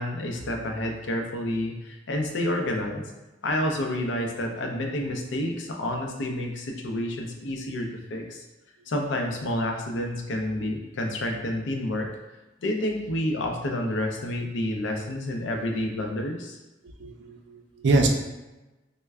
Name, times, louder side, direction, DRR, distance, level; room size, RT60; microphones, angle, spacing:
voice 1, 0.0-3.0 3.4-8.4 8.9-12.1 12.6-16.6, left 1 dB, 75° left, 2 dB, 0.5 m, -29 dB
voice 2, 17.0-18.1, right 3 dB, 65° right, 4 dB, 0.4 m, -24 dB
3.2 x 2.1 x 3.4 m, 1.1 s
head